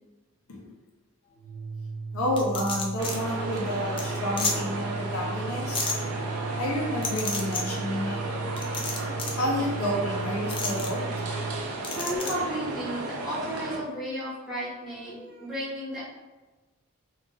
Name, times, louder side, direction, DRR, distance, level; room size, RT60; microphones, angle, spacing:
Organ, 1.3-11.6, right 4 dB, 40° left, 0.8 m, -35 dB
voice 1, 2.1-5.8 6.6-8.2 9.4-11.0, left 1 dB, 80° left, -2 dB, 0.7 m, -30 dB
sound 1, 2.4-3.2 3.6-3.7 4.0-4.1 4.4-4.5 5.7-5.9 7.0-7.6 8.6-9.4 10.5-10.9 11.8-12.3, left 4 dB, 25° left, 0.3 m, -30 dB
sound 2, 3.0-13.8, right 2 dB, 85° right, 0.5 m, -34 dB
voice 2, 11.9-16.1, equal, ahead, -11 dB, 1.1 m, -33 dB
2.5 x 2.4 x 3.8 m, 1.2 s
head